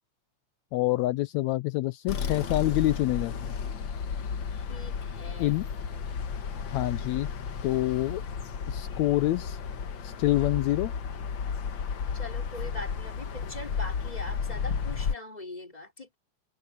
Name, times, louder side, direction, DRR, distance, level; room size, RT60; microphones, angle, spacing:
voice 1, 0.7-3.5 5.4-5.7 6.6-7.3 7.6-8.2 8.7-9.6 10.0-10.9, left 17 dB, 80° left, 1.9 m, -27 dB
sound 1, 2.1-15.2, left 6 dB, 50° left, 1.6 m, -33 dB
voice 2, 4.7-5.6 12.1-16.2, left 2 dB, 15° left, 4.2 m, -41 dB
omnidirectional pair, 3.3 m